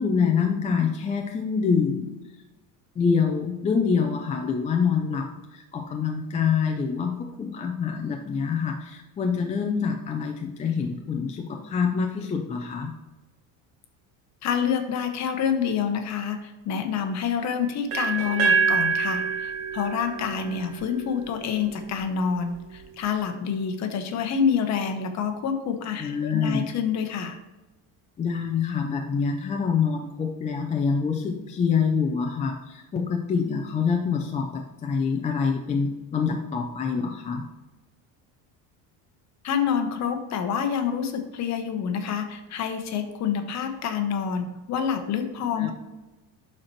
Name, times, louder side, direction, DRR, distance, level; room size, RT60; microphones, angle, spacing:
voice 1, 0.0-2.1 3.0-12.9 26.0-26.7 28.2-37.5 45.6-45.7, left 6 dB, 20° left, 2 dB, 0.4 m, -26 dB
voice 2, 14.4-27.4 39.4-45.7, left 7 dB, 40° left, 6 dB, 1.0 m, -27 dB
sound 1, 17.9-21.8, right 5 dB, 90° right, 1.9 m, -26 dB
11.5 x 4.3 x 3.1 m, 1.1 s
cardioid pair, 165°, 40 cm